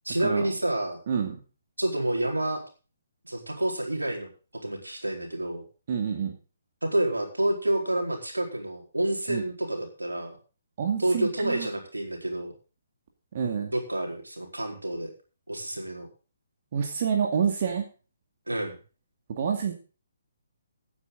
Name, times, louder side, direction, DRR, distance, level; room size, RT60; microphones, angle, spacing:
voice 1, 0.0-1.0 1.8-2.6 3.2-4.3 4.6-5.6 6.8-10.4 11.0-12.5 13.7-15.1 15.5-16.1 18.5-18.8, right 1 dB, 80° right, 2 dB, 4.3 m, -28 dB
voice 2, 1.1-1.4 5.9-6.3 9.3-9.4 10.8-11.7 13.3-13.7 16.7-17.9 19.3-19.7, right 7 dB, 40° right, 3 dB, 2.2 m, -28 dB
16.0 x 9.6 x 3.9 m, 0.35 s
figure-of-eight pair, 135°, 0 cm